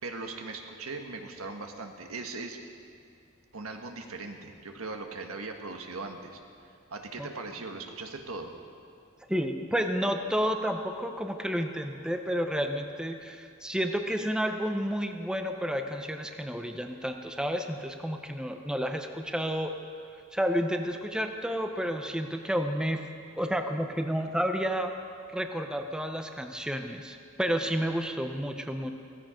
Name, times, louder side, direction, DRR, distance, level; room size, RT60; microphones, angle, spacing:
voice 1, 0.0-2.6 3.5-6.4 6.7-8.5, right 3 dB, 90° right, 4 dB, 1.4 m, -39 dB
voice 2, 9.3-19.7 20.3-23.0 23.4-24.9 25.3-28.9, equal, 5° right, 5 dB, 0.7 m, -30 dB
16.0 x 15.5 x 5.1 m, 2.4 s
head